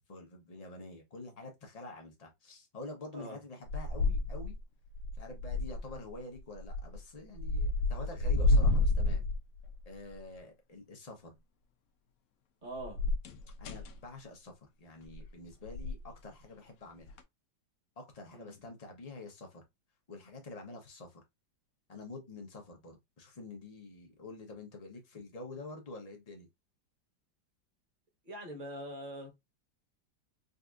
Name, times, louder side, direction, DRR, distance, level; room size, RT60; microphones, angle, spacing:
voice 1, 0.1-4.6 5.2-9.2 9.9-11.3 13.6-14.5 14.8-17.2 18.0-19.6 20.1-21.2 21.9-26.5, left 2 dB, 60° left, 0.4 m, -47 dB
sound 1, 3.7-4.6 4.9-6.0 6.6-7.0 7.4-9.8 12.8-14.0 15.0-15.3 15.6-16.0 17.1-17.2, left 2 dB, 75° left, 0.8 m, -30 dB
voice 2, 12.6-13.1 18.3-18.6 28.2-29.3, right 1 dB, 30° right, 1.1 m, -43 dB
4.0 x 2.7 x 2.3 m
omnidirectional pair, 2.0 m